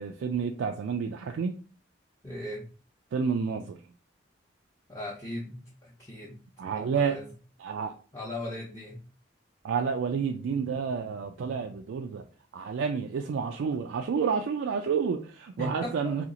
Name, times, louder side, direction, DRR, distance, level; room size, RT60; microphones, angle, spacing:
voice 1, 0.0-1.6 3.1-3.8 6.6-7.2 7.6-7.9 9.6-12.2 12.5-16.2, right 6 dB, 80° right, 0.3 m, -30 dB
voice 2, 2.2-2.7 4.9-6.4 6.7-7.3 8.1-9.0 15.6-16.3, left 1 dB, 15° left, 0.6 m, -38 dB
2.9 x 2.3 x 3.7 m
head